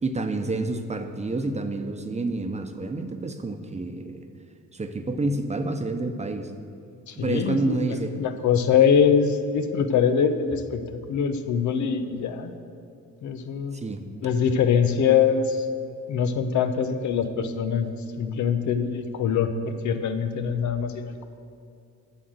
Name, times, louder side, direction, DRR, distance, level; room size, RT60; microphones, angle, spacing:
voice 1, 0.0-4.1 4.7-6.5 7.2-8.1 13.7-14.0, right 2 dB, 20° right, 7 dB, 0.9 m, -28 dB
voice 2, 7.1-7.8 8.2-12.5 13.2-13.9 14.2-15.6 16.1-21.2, left 7 dB, 75° left, 8 dB, 0.9 m, -23 dB
9.8 x 6.4 x 7.9 m, 2.6 s
cardioid pair, 90°, 30 cm